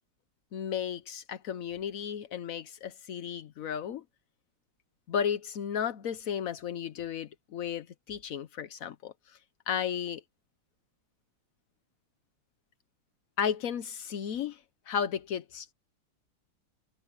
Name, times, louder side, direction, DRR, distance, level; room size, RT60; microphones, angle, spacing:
voice 1, 0.5-4.0 5.1-9.4 9.7-10.2 13.4-15.7, left 8 dB, 65° left, 0.8 m, -34 dB
omnidirectional pair, 2.4 m